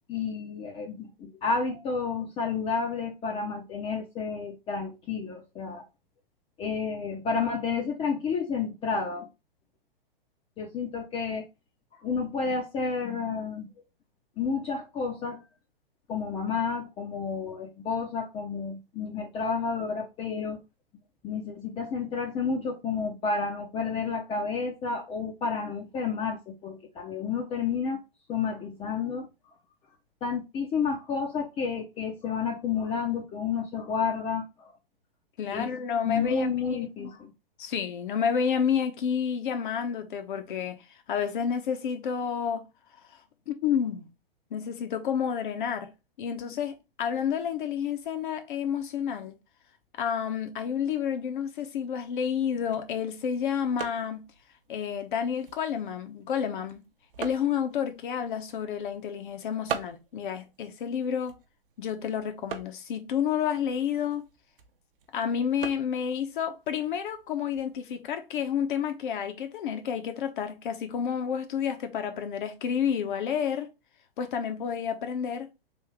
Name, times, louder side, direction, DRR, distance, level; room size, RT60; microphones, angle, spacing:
voice 1, 0.1-5.8 6.6-9.3 10.6-11.5 12.0-13.7 14.4-15.5 16.1-20.6 21.2-28.0 28.3-29.3 30.2-34.7 35.5-35.7 36.0-37.3, left 5 dB, 20° left, 0.6 m, -30 dB
voice 2, 35.4-37.1 37.6-40.8 41.1-42.6 43.5-44.1 44.5-45.9 46.2-49.4 49.9-54.3 54.7-56.8 57.2-61.4 61.8-64.3 65.1-73.7 74.2-75.5, left 8 dB, 60° left, 0.9 m, -30 dB
sound 1, 52.3-67.8, right 8 dB, 65° right, 0.8 m, -44 dB
3.4 x 2.7 x 4.6 m
hypercardioid pair, 125°, 29 cm